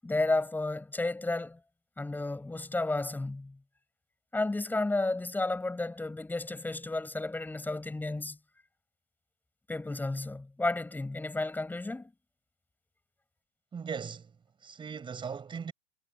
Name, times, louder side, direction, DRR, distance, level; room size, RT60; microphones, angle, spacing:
voice 1, 0.0-1.6 2.0-3.6 4.3-8.4 9.7-12.1, left 2 dB, 5° left, 7.3 m, -32 dB
voice 2, 13.7-15.7, right 6 dB, 10° right, 6.6 m, -39 dB
supercardioid pair, 160°, 38 cm